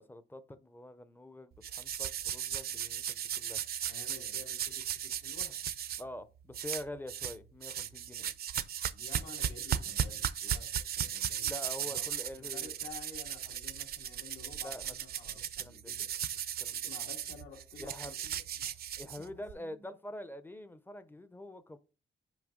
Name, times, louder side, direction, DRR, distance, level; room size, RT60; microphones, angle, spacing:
voice 1, 0.0-3.6 6.0-8.3 11.4-12.8 14.6-15.0 15.6-15.9 16.6-16.9 17.8-18.1 19.0-21.8, left 1 dB, 10° left, 0.4 m, -45 dB
sound 1, 1.6-6.0 6.5-7.4 7.6-19.5, right 9 dB, 50° right, 0.4 m, -36 dB
voice 2, 3.8-5.6 8.9-12.1 12.4-16.1 16.7-18.8 19.2-19.8, left 4 dB, 85° left, 1.9 m, -52 dB
6.1 x 5.0 x 3.7 m
wide cardioid pair, 145°, 20 cm